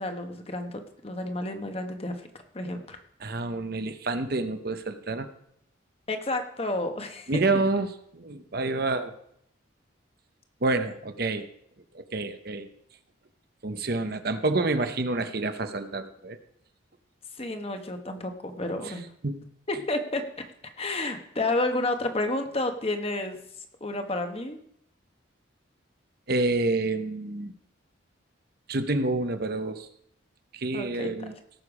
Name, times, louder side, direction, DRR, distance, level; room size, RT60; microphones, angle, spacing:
voice 1, 0.0-2.3 2.5-3.0 6.1-7.3 17.4-19.1 19.7-20.2 20.8-23.4 23.8-24.6 30.7-31.1, left 2 dB, 30° left, 6 dB, 1.1 m, -30 dB
voice 2, 3.2-5.3 7.3-9.1 10.6-11.5 11.9-12.7 13.6-16.4 18.8-18.9 19.2-19.4 26.3-27.5 28.7-29.9 30.5-31.4, right 2 dB, 50° right, 9 dB, 0.8 m, -28 dB
17.5 x 6.7 x 4.9 m, 0.72 s
head